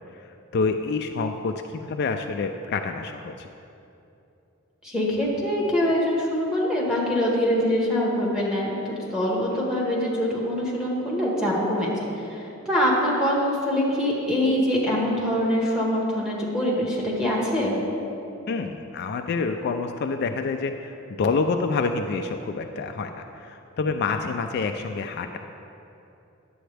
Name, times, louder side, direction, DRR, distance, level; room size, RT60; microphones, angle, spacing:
voice 1, 0.5-3.5 18.5-25.4, left 4 dB, 50° left, 6 dB, 0.3 m, -27 dB
voice 2, 4.8-8.8 9.1-17.7, equal, 5° right, -5 dB, 1.5 m, -24 dB
10.0 x 7.8 x 3.3 m, 2.8 s
head